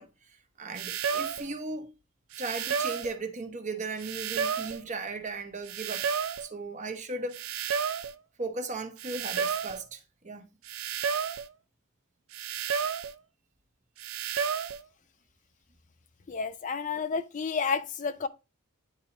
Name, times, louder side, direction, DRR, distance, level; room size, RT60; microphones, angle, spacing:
voice 1, 0.0-1.9 2.4-6.1 6.4-7.6 8.4-10.5, right 3 dB, 35° right, 1.0 m, -37 dB
Game Radar, 0.8-1.5 2.3-3.2 4.0-4.8 5.7-6.5 7.3-8.2 9.0-9.8 10.7-11.5 12.3-13.2 14.0-14.8, right 7 dB, 65° right, 0.6 m, -31 dB
voice 2, 16.3-18.3, left 5 dB, 35° left, 0.4 m, -30 dB
10.0 x 4.4 x 3.0 m
head